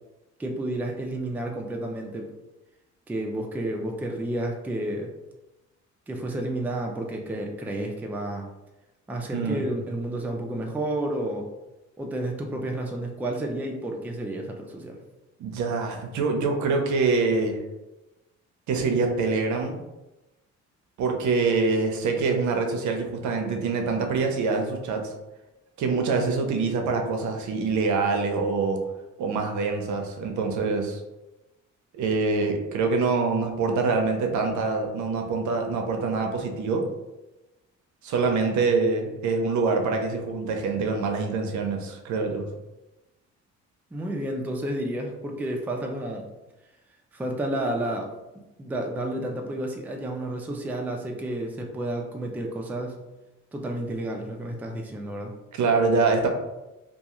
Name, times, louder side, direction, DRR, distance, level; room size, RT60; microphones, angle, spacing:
voice 1, 0.4-2.3 3.1-5.1 6.1-8.5 9.1-11.5 12.0-15.0 43.9-46.2 47.1-48.1 48.6-53.0 53.5-55.4, right 1 dB, 5° right, 2 dB, 0.3 m, -31 dB
voice 2, 9.3-9.6 15.4-17.6 18.7-19.8 21.0-25.1 25.8-28.8 29.2-31.0 31.9-36.9 38.0-42.4 55.5-56.3, right 4 dB, 75° right, 3 dB, 0.6 m, -25 dB
2.3 x 2.2 x 2.9 m, 1.0 s
cardioid pair, 90°, 30 cm